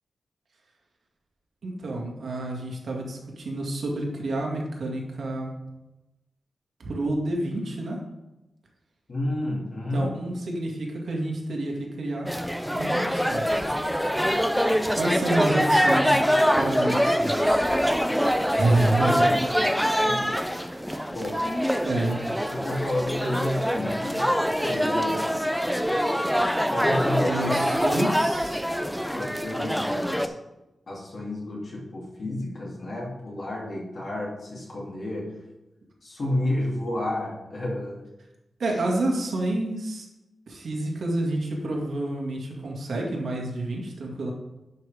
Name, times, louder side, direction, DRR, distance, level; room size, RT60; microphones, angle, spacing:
voice 1, 1.6-5.5 6.8-8.0 9.9-12.3 12.7-13.7 14.9-16.2 16.5-17.6 18.5-19.3 21.8-22.3 27.2-28.6 38.6-40.1 40.5-44.3, right 2 dB, 75° right, -1 dB, 1.9 m, -28 dB
voice 2, 9.1-10.1 18.7-18.9 19.2-20.4 21.1-21.4 22.5-25.3 26.7-27.4 29.1-30.3 30.9-35.3 36.0-38.0, left 1 dB, 50° left, -4 dB, 2.7 m, -31 dB
sound 1, 12.3-30.3, equal, ahead, 0.5 m, -24 dB
10.5 x 5.8 x 3.5 m, 0.98 s
wide cardioid pair, 120°, 0 cm